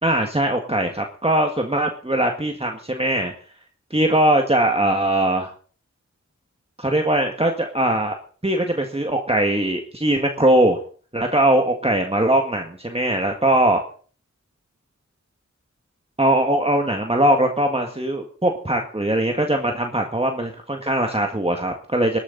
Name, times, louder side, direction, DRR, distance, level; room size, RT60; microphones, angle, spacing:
voice 1, 0.0-3.3 3.9-5.5 6.8-8.2 8.4-10.8 11.1-13.8 16.2-22.2, right 1 dB, 20° right, 2 dB, 1.8 m, -20 dB
20.0 x 11.5 x 4.1 m, 0.43 s
wide cardioid pair, 60°, 30 cm